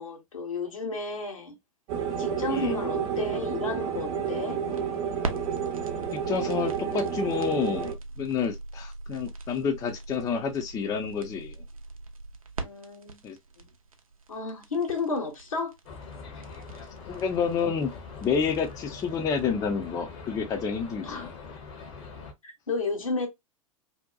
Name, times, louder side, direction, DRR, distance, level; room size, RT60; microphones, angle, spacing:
voice 1, 0.0-1.5 2.2-4.6 12.6-13.2 13.6-13.7 14.3-15.7 21.0-21.3 22.4-23.3, left 3 dB, 75° left, 1.0 m, -32 dB
sound 1, 1.9-7.9, right 7 dB, 45° right, 0.8 m, -30 dB
voice 2, 2.5-2.8 6.1-11.6 13.2-13.4 17.1-17.9 18.2-21.3, left 6 dB, 20° left, 0.5 m, -29 dB
sound 2, 4.3-19.4, right 3 dB, 80° right, 0.5 m, -41 dB
sound 3, 15.8-22.3, left 4 dB, 50° left, 0.8 m, -43 dB
2.7 x 2.1 x 2.3 m
figure-of-eight pair, 95°, 17 cm